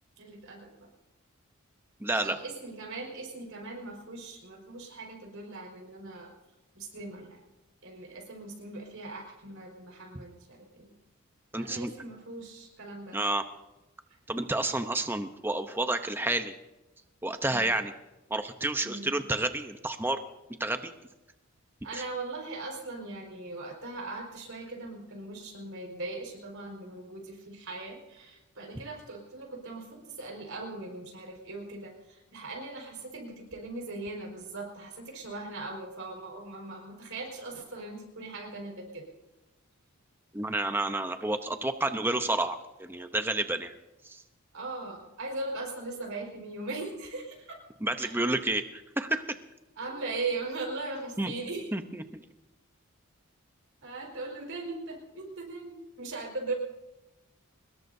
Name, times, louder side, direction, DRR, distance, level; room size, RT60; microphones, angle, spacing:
voice 1, 0.2-0.9 2.1-6.3 6.7-7.4 7.8-10.9 11.5-13.2 17.5-17.7 18.8-19.1 21.8-39.1 44.5-47.6 48.0-48.2 49.8-51.7 53.8-56.5, right 3 dB, 65° right, 0 dB, 4.8 m, -39 dB
voice 2, 2.0-2.4 11.5-11.9 13.1-13.4 14.3-16.5 17.2-17.9 18.3-20.2 20.6-20.9 40.3-43.7 44.0-44.2 47.8-49.2 51.2-51.3 51.7-52.0, right 2 dB, 10° right, 7 dB, 0.7 m, -30 dB
24.0 x 21.0 x 2.7 m, 1.0 s
head